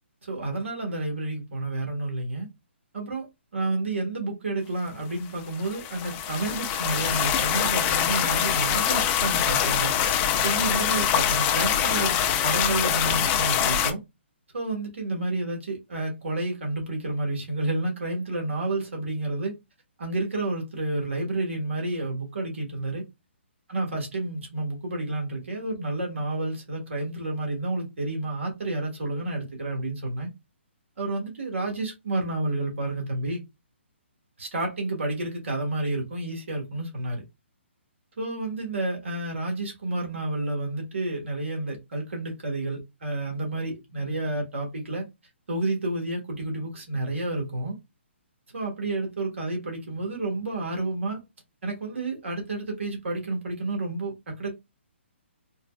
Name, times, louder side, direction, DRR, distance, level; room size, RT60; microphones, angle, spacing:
voice 1, 0.2-2.5 2.9-3.3 3.5-9.9 10.4-12.2 12.4-14.0 14.5-19.5 20.0-23.0 23.7-30.3 31.0-33.4 34.4-37.2 38.2-45.1 45.5-47.7 48.5-51.2 51.6-54.5, right 2 dB, 75° right, 1.6 m, -30 dB
sound 1, 5.5-13.9, left 9 dB, 20° left, 0.4 m, -24 dB
3.8 x 2.2 x 2.3 m
hypercardioid pair, 145°, 7 cm